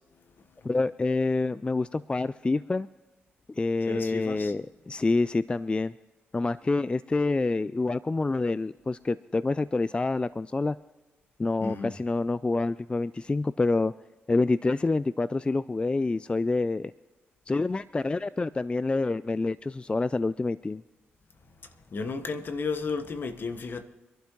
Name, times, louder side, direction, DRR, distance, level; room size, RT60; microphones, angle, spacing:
voice 1, 0.6-2.9 3.6-5.9 6.3-10.8 11.4-13.9 14.3-16.9 17.5-20.8, left 3 dB, 25° left, 0.3 m, -27 dB
voice 2, 3.9-4.5 11.6-11.9 21.9-23.8, left 4 dB, 55° left, 1.3 m, -33 dB
25.0 x 11.5 x 3.2 m
cardioid pair, 65°, 4 cm